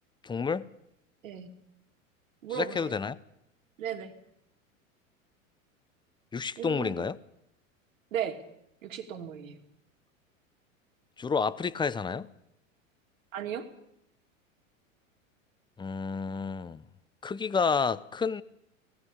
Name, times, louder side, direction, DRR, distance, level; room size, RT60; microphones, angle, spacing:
voice 1, 0.2-0.7 2.5-3.2 6.3-7.2 11.2-12.3 15.8-16.8 17.2-18.4, left 5 dB, 10° left, 0.7 m, -30 dB
voice 2, 2.4-3.0 3.8-4.1 6.6-7.0 8.1-8.4 8.8-9.6 13.3-13.7, right 9 dB, 70° right, 2.8 m, -36 dB
19.0 x 16.0 x 9.9 m
hypercardioid pair, 90°, 41 cm